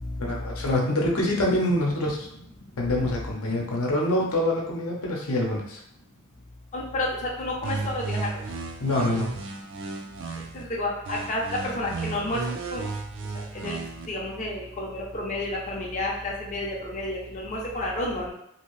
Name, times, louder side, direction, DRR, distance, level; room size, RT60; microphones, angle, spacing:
voice 1, 0.2-2.3 2.8-5.8 8.8-9.4, left 1 dB, 80° left, -2 dB, 0.7 m, -25 dB
voice 2, 6.7-7.1 7.4-8.3 10.5-12.4 12.7-12.9 13.5-13.8 14.1-18.3, left 1 dB, 35° left, -3 dB, 0.5 m, -30 dB
sound 1, 7.6-10.6 11.0-14.1, right 4 dB, 60° right, 0.4 m, -34 dB
2.8 x 2.7 x 3.0 m, 0.77 s
head